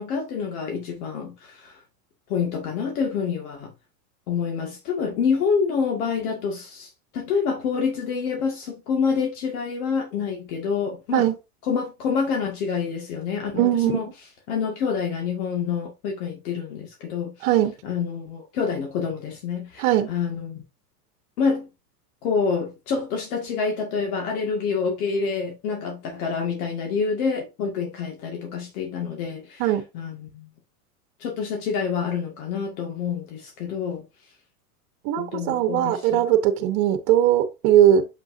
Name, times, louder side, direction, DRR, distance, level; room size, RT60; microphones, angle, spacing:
voice 1, 0.0-1.8 2.3-3.7 4.3-11.3 11.7-14.1 14.5-17.5 17.8-20.6 21.4-21.7 22.2-30.5 31.2-34.0 35.2-36.2, left 6 dB, 65° left, 2.0 m, -27 dB
voice 2, 13.5-14.0 17.4-17.7 19.8-20.1 29.6-29.8 35.0-38.1, right 11 dB, 50° right, 1.1 m, -20 dB
7.0 x 5.5 x 2.6 m
supercardioid pair, 125°, 46 cm